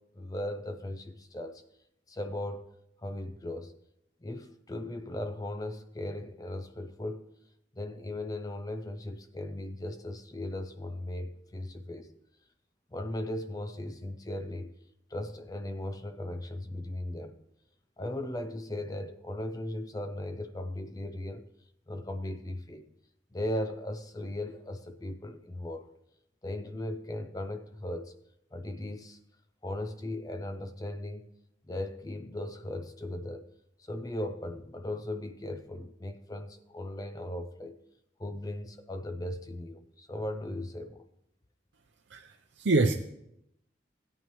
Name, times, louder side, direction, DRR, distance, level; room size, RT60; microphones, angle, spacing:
voice 1, 0.2-1.6 2.1-2.7 3.0-3.7 4.2-7.3 7.7-12.2 12.9-14.7 15.1-17.4 18.0-21.5 21.9-22.9 23.3-25.9 26.4-28.1 28.5-29.2 29.6-31.3 31.7-33.5 33.8-37.7 38.2-41.0, left 1 dB, 20° left, 0.5 m, -37 dB
voice 2, 42.1-42.9, right 3 dB, 80° right, 0.6 m, -26 dB
17.0 x 9.0 x 3.0 m
head